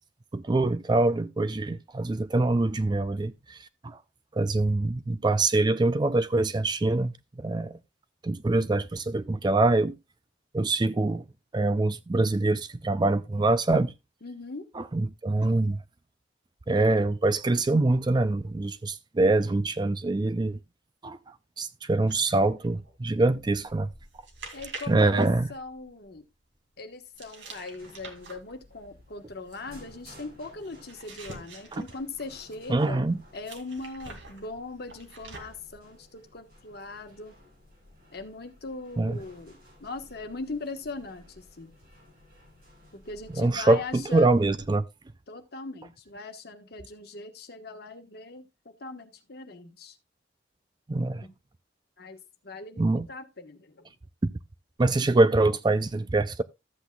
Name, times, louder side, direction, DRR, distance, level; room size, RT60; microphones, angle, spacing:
voice 1, 0.3-3.6 3.8-4.0 4.3-7.8 8.2-10.0 10.5-11.2 11.5-13.9 14.8-15.8 16.7-20.6 21.0-21.2 21.6-23.9 24.9-25.5 31.7-31.8 32.7-33.2 39.0-39.2 43.4-44.9 50.9-51.3 52.8-53.0 54.8-56.4, right 2 dB, 25° right, 0.4 m, -24 dB
voice 2, 14.2-14.7 24.5-26.2 26.8-37.3 38.1-41.7 42.9-44.4 45.3-50.0 51.2-51.3 52.0-53.9 55.2-55.5, left 3 dB, 55° left, 1.3 m, -40 dB
sound 1, 22.1-26.2 27.2-32.7 33.4-35.8, right 3 dB, 75° right, 2.3 m, -47 dB
sound 2, 27.1-44.7, left 1 dB, 55° right, 6.4 m, -55 dB
13.5 x 8.1 x 2.3 m
head